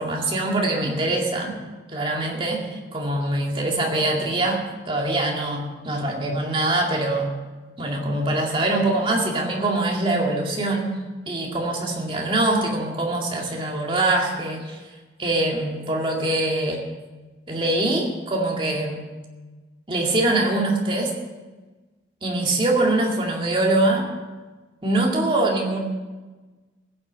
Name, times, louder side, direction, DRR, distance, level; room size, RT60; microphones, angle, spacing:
voice 1, 0.0-1.5 1.9-7.3 7.8-11.0 11.3-14.8 15.2-16.8 17.5-19.0 19.9-21.1 22.2-24.1 24.8-25.8, right 2 dB, 30° right, -1 dB, 2.2 m, -23 dB
16.0 x 7.8 x 7.5 m, 1.3 s
head